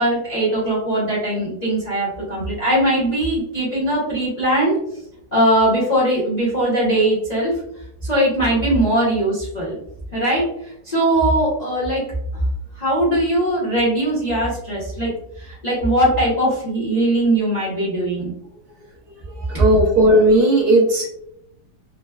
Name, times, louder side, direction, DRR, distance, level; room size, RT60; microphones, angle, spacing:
voice 1, 0.0-4.8 5.3-7.5 8.0-9.8 10.1-10.5 10.8-12.0 12.8-18.3, right 1 dB, 35° left, -8 dB, 0.7 m, -20 dB
voice 2, 19.4-21.1, right 1 dB, 65° right, -2 dB, 1.1 m, -15 dB
3.9 x 2.1 x 2.2 m, 0.77 s
omnidirectional pair, 2.0 m